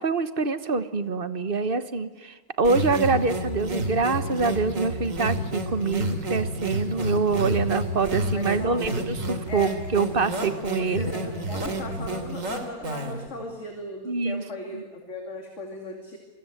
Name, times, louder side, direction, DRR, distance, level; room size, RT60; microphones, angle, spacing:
voice 1, 0.0-11.1 14.0-14.4 14.7-14.8, right 4 dB, 35° right, 12 dB, 1.3 m, -25 dB
sound 1, 2.6-13.3, right 1 dB, 50° right, 3.3 m, -30 dB
voice 2, 8.3-9.0 9.5-9.8 10.7-16.2, left 2 dB, 45° left, 3 dB, 2.9 m, -38 dB
28.0 x 22.5 x 7.9 m, 1.3 s
omnidirectional pair, 1.7 m